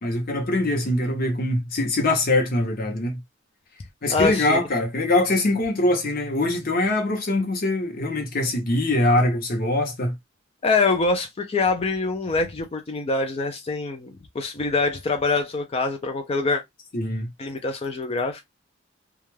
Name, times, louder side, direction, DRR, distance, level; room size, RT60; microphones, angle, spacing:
voice 1, 0.0-3.2 4.0-10.1 16.9-17.3, left 1 dB, 50° left, 0.9 m, -23 dB
voice 2, 4.1-4.6 10.6-16.6 17.4-18.4, left 3 dB, 30° left, 0.4 m, -24 dB
2.3 x 2.2 x 3.1 m
head